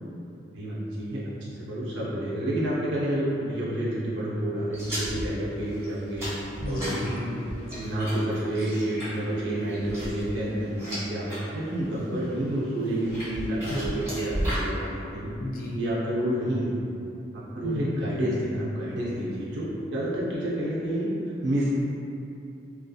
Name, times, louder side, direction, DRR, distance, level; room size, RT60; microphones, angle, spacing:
voice 1, 0.5-1.2 1.5-6.3 6.7-7.1 7.7-15.3 15.7-16.7 17.3-21.7, right 1 dB, 70° right, -8 dB, 0.5 m, -29 dB
sound 1, 4.7-11.4 11.8-12.3 12.9-14.7, equal, 15° right, 0.9 m, -34 dB
voice 2, 6.6-7.6 13.7-13.8 15.4-15.8 17.6-18.0, left 1 dB, 45° left, -3 dB, 0.3 m, -32 dB
2.6 x 2.3 x 2.3 m, 2.7 s
head